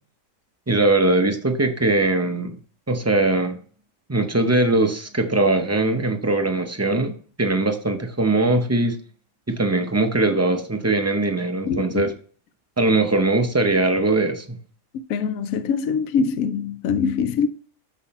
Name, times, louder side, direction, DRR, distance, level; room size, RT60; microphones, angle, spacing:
voice 1, 0.7-2.6 2.9-3.6 4.1-9.0 9.5-12.1 12.8-14.6, right 2 dB, 20° right, 0.4 m, -21 dB
voice 2, 11.7-12.0 14.9-17.5, left 6 dB, 75° left, 1.0 m, -23 dB
6.3 x 5.8 x 4.2 m
omnidirectional pair, 1.5 m